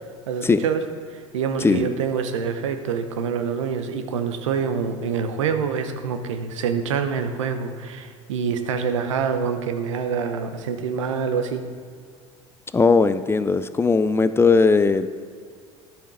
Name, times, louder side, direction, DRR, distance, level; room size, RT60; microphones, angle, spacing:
voice 1, 0.3-0.8 1.3-11.6, right 6 dB, 80° right, 8 dB, 0.8 m, -26 dB
voice 2, 12.7-15.1, left 4 dB, 15° left, 13 dB, 0.4 m, -18 dB
10.0 x 6.9 x 4.8 m, 2.1 s
hypercardioid pair, 75°, 16 cm